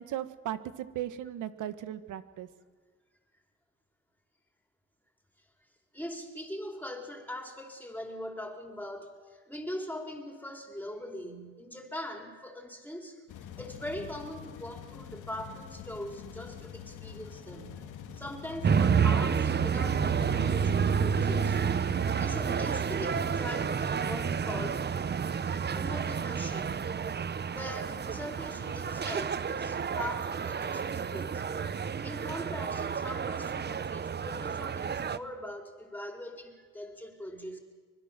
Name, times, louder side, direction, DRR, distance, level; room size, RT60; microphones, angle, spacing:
voice 1, 0.0-2.5, right 12 dB, 85° right, 12 dB, 1.6 m, -37 dB
voice 2, 5.9-17.8 18.1-21.6 22.2-24.9 25.7-26.8 27.5-31.5 31.8-37.6, left 1 dB, 5° left, 3 dB, 4.7 m, -41 dB
sound 1, 13.3-22.7, left 8 dB, 90° left, 2.1 m, -45 dB
sound 2, 18.6-35.2, right 7 dB, 35° right, 0.9 m, -30 dB
24.5 x 21.0 x 7.6 m, 1.5 s
cardioid pair, 90°, 30 cm